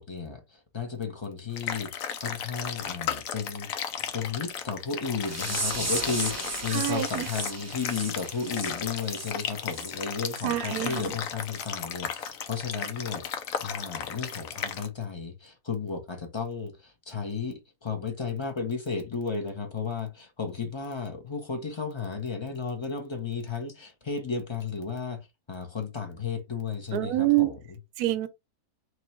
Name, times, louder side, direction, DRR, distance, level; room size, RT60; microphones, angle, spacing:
voice 1, 0.0-1.9 2.2-3.7 4.1-27.8, left 5 dB, 30° left, 0.5 m, -34 dB
sound 1, 1.6-14.9, left 8 dB, 70° left, 1.0 m, -35 dB
sound 2, 5.2-9.9 10.3-10.5 10.9-11.1 11.6-11.7 12.2-12.3, right 2 dB, 25° right, 0.4 m, -35 dB
voice 2, 6.7-7.3 10.4-11.1 26.9-27.5 28.0-28.3, right 16 dB, 80° right, 1.1 m, -26 dB
3.0 x 3.0 x 4.2 m
omnidirectional pair, 1.7 m